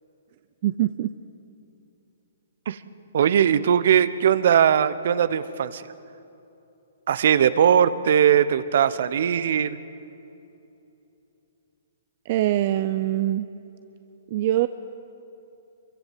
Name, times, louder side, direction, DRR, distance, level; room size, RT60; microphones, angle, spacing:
voice 1, 0.6-1.1 12.3-13.5 14.3-14.7, right 14 dB, 45° right, 11 dB, 0.6 m, -23 dB
voice 2, 3.1-5.9 7.1-9.8, right 9 dB, 60° right, 15 dB, 1.0 m, -20 dB
25.0 x 23.5 x 7.6 m, 2.8 s
hypercardioid pair, 140°, 0 cm